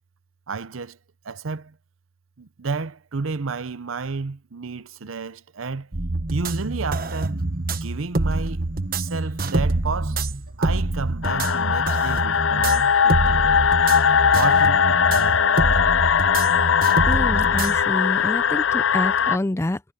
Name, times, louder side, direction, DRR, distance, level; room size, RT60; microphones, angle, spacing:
voice 1, 0.5-1.0 1.2-1.7 2.4-5.9 6.3-7.4 7.7-8.6 9.0-10.2 10.6-13.5 14.3-15.8, right 4 dB, 85° right, 0.8 m, -31 dB
sound 1, 5.9-17.8, right 2 dB, 45° right, 1.1 m, -26 dB
Insect, 6.3-19.3, equal, 65° right, 6.7 m, -48 dB
sound 2, 11.2-19.4, left 7 dB, 65° left, 0.5 m, -19 dB
voice 2, 17.0-19.8, left 1 dB, 15° left, 0.4 m, -27 dB
head